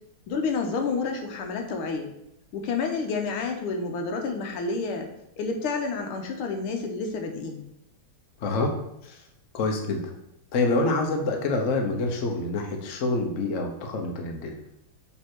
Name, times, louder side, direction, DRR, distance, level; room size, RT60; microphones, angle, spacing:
voice 1, 0.3-2.1 2.5-5.1 5.4-7.6, left 4 dB, 85° left, 3 dB, 1.7 m, -29 dB
voice 2, 8.4-8.7 9.0-9.2 9.5-10.1 10.5-14.5, left 2 dB, 55° left, 3 dB, 0.9 m, -26 dB
7.0 x 3.4 x 4.4 m, 0.80 s
omnidirectional pair, 2.3 m